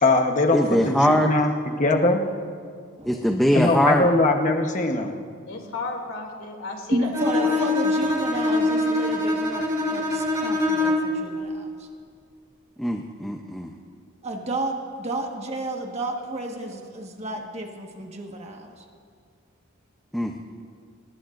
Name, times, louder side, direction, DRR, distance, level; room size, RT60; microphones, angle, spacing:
voice 1, 0.0-2.3 3.5-5.1, left 2 dB, 35° left, 4 dB, 1.1 m, -21 dB
voice 2, 0.5-1.3 3.0-4.1 12.8-13.7 20.1-20.4, equal, ahead, 2 dB, 0.6 m, -22 dB
voice 3, 5.5-7.6, left 3 dB, 70° left, 1 dB, 2.8 m, -34 dB
voice 4, 6.9-11.9 14.2-18.7, right 1 dB, 30° right, 1 dB, 1.5 m, -31 dB
Bowed string instrument, 7.1-11.2, left 2 dB, 15° right, 1.8 m, -24 dB
23.0 x 20.0 x 2.6 m, 2.2 s
head